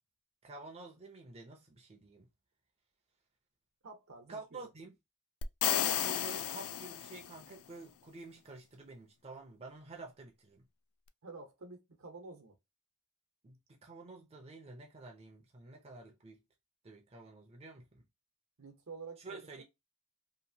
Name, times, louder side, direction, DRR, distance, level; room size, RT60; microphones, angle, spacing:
voice 1, 0.4-2.3 4.3-5.0 5.6-10.7 13.4-16.4 16.8-18.0 19.2-19.6, right 3 dB, 30° right, 0.5 m, -49 dB
voice 2, 3.8-4.6 11.2-12.5 18.6-19.5, right 4 dB, 75° right, 0.8 m, -49 dB
sound 1, 5.4-7.5, left 11 dB, 80° left, 0.3 m, -33 dB
2.9 x 2.5 x 2.6 m
head